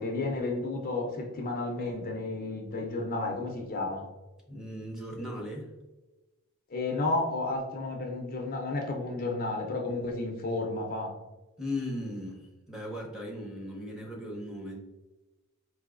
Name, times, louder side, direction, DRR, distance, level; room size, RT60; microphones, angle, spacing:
voice 1, 0.0-4.0 6.7-11.1, left 2 dB, 45° left, 1 dB, 0.6 m, -32 dB
voice 2, 4.5-5.7 11.6-14.8, left 1 dB, 5° right, -2 dB, 0.8 m, -37 dB
4.6 x 2.6 x 2.5 m, 1.1 s
head